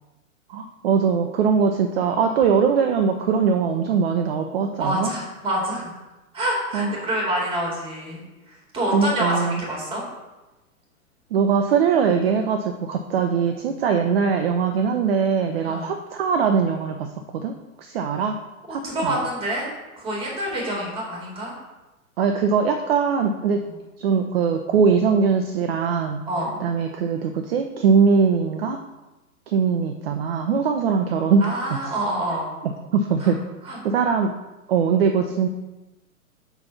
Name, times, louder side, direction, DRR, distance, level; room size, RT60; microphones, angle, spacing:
voice 1, 0.5-5.1 6.7-6.9 8.9-9.6 11.3-18.4 18.7-19.2 22.2-23.6 24.0-26.2 26.6-28.8 29.5-31.5 31.7-31.8 32.6-33.4 33.8-34.3 34.7-35.5, right 6 dB, 45° right, 5 dB, 0.6 m, -21 dB
voice 2, 4.8-5.9 6.3-10.0 15.6-15.9 18.7-19.7 20.0-21.5 23.7-23.8 26.3-26.6 31.4-32.5 33.2-33.3 33.6-33.8, right 1 dB, 10° right, -3 dB, 2.2 m, -27 dB
5.7 x 4.2 x 5.6 m, 1.1 s
figure-of-eight pair, 105°, 43 cm